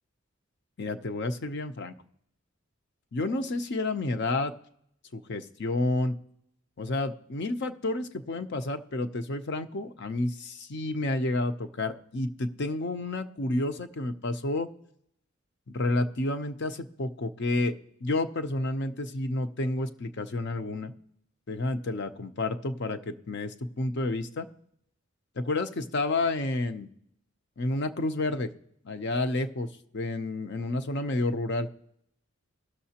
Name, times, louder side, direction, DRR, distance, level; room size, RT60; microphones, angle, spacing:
voice 1, 0.8-1.9 3.1-4.5 5.1-6.1 6.8-14.7 15.7-17.7 18.0-20.9 21.5-24.5 25.4-26.9 27.6-28.5 28.8-29.7 29.9-31.7, left 2 dB, 55° left, 9 dB, 0.6 m, -30 dB
17.5 x 6.5 x 2.8 m, 0.73 s
head